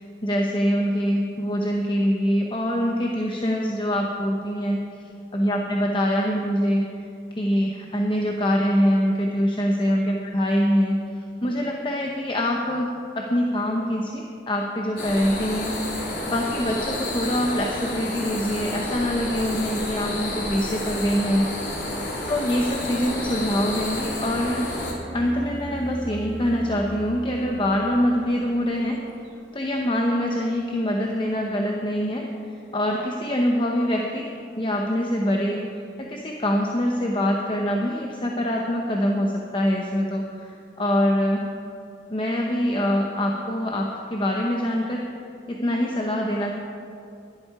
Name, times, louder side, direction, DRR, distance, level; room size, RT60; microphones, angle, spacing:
voice 1, 0.0-6.9 7.3-11.0 11.4-21.5 22.3-24.7 25.1-29.0 29.5-32.3 32.7-34.3 34.6-41.4 42.1-45.0 45.5-46.5, equal, 30° left, 0 dB, 0.9 m, -24 dB
sound 1, 15.0-24.9, left 1 dB, 85° left, 2.7 m, -30 dB
sound 2, 23.9-30.6, right 1 dB, 75° right, 2.0 m, -41 dB
15.5 x 11.5 x 4.8 m, 2.6 s
head